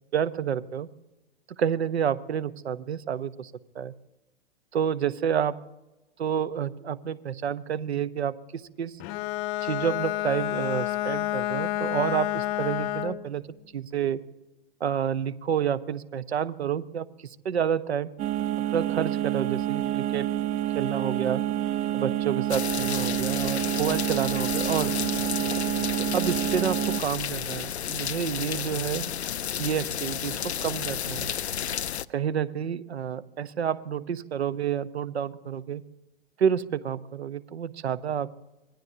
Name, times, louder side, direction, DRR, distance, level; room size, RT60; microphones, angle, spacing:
voice 1, 0.1-0.9 1.6-3.9 4.7-5.6 6.2-9.0 9.6-13.4 13.7-14.2 14.8-18.1 18.7-20.3 20.7-21.4 21.9-24.9 26.0-29.0 29.6-31.3 32.1-35.8 36.4-38.3, right 8 dB, 80° right, 15 dB, 0.9 m, -29 dB
Bowed string instrument, 9.0-13.3, left 16 dB, 35° left, 0.7 m, -29 dB
sound 1, 18.2-27.0, right 12 dB, 30° right, 0.6 m, -28 dB
sound 2, 22.5-32.0, left 9 dB, 90° left, 0.5 m, -32 dB
26.0 x 19.5 x 2.7 m, 1.1 s
hypercardioid pair, 115°, 32 cm